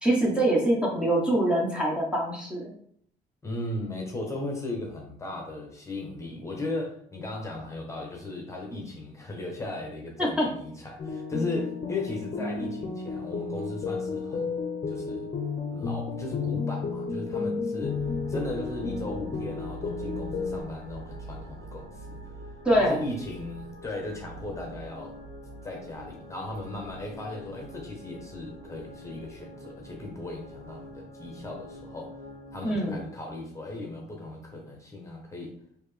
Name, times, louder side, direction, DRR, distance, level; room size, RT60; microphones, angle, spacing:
voice 1, 0.0-2.7 10.2-10.5 22.6-23.0 32.6-33.0, right 1 dB, 5° right, -3 dB, 0.9 m, -24 dB
voice 2, 3.4-14.5 14.9-15.3 15.7-18.0 18.3-22.2 22.7-25.1 25.6-32.1 32.5-35.5, left 2 dB, 15° left, 0 dB, 1.0 m, -37 dB
sound 1, 11.0-20.6, left 4 dB, 40° left, 0.7 m, -32 dB
sound 2, 17.8-33.0, right 1 dB, 85° right, 1.3 m, -44 dB
4.2 x 2.8 x 3.3 m, 0.65 s
cardioid pair, 110°, 17 cm